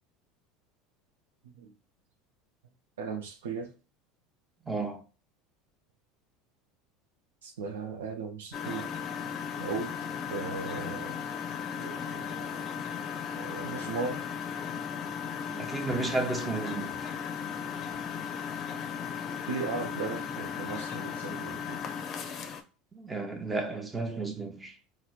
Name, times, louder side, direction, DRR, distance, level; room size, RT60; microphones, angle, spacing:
voice 1, 3.0-3.7 7.4-8.9 9.6-11.3 11.8-12.6 13.4-14.3 19.5-21.8, right 4 dB, 85° right, 0.5 m, -37 dB
voice 2, 4.7-5.0 15.5-17.1 22.9-24.7, right 3 dB, 15° right, 0.7 m, -33 dB
Engine, 8.5-22.6, left 7 dB, 40° left, 0.5 m, -36 dB
4.3 x 2.0 x 2.4 m
hypercardioid pair, 85°, 0 cm